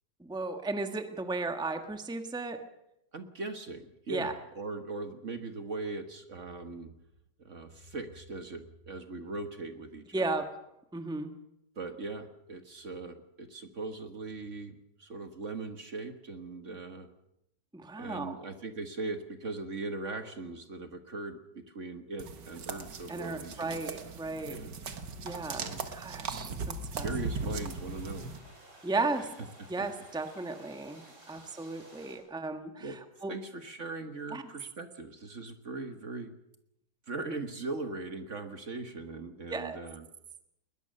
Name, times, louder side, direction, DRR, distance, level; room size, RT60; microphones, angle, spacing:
voice 1, 0.2-2.6 4.1-4.3 10.1-10.4 10.9-11.3 17.7-18.3 23.1-24.6 25.2-27.1 28.8-29.3 29.7-32.9 33.2-33.3 34.3-34.4 39.5-39.8, right 3 dB, 5° right, 7 dB, 1.4 m, -35 dB
voice 2, 3.1-6.9 7.4-10.3 11.7-17.1 18.0-23.9 24.5-24.7 25.6-25.8 27.0-28.3 29.2-29.8 31.3-31.5 32.8-33.0 33.3-36.3 37.1-40.1, right 3 dB, 45° right, 8 dB, 1.7 m, -40 dB
sound 1, 22.2-28.4, right 4 dB, 85° right, 2.2 m, -38 dB
sound 2, 27.1-32.2, right 1 dB, 70° right, 6.4 m, -55 dB
21.0 x 20.5 x 6.6 m, 0.82 s
omnidirectional pair, 1.8 m